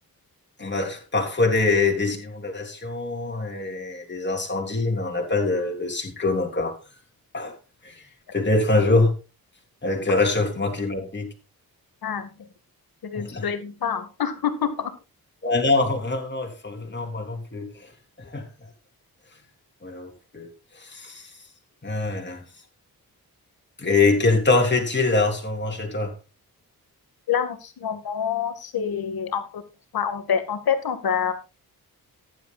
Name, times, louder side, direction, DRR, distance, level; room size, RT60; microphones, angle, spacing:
voice 1, 0.6-6.8 7.3-7.5 7.8-7.9 8.3-9.1 9.8-11.3 13.2-13.5 15.4-17.9 18.2-18.5 19.8-20.5 20.8-21.2 21.8-22.4 23.8-26.1, left 3 dB, 30° left, 3.5 m, -24 dB
voice 2, 12.0-12.5 13.0-14.9 27.3-29.6 29.9-31.3, left 7 dB, 80° left, 2.0 m, -27 dB
15.0 x 11.0 x 2.4 m
wide cardioid pair, 110°, 36 cm